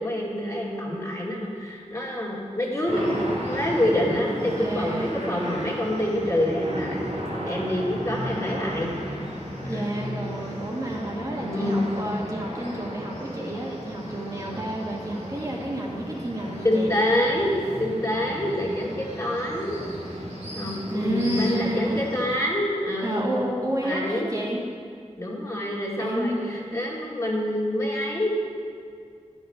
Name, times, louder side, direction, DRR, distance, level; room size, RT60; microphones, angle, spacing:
voice 1, 0.0-3.2 3.5-7.0 7.5-8.9 9.6-9.9 11.4-11.8 16.6-19.8 20.6-23.3 23.8-24.3 25.2-28.3, left 1 dB, 25° left, -5 dB, 2.2 m, -26 dB
sound 1, 2.9-22.2, equal, 80° right, 2.7 m, -34 dB
voice 2, 4.6-5.1 9.7-16.9 18.2-18.4 20.9-22.1 23.0-24.6 26.0-26.7, right 1 dB, 30° right, -4 dB, 1.6 m, -30 dB
11.5 x 7.2 x 5.6 m, 2.2 s
wide cardioid pair, 80°, 12 cm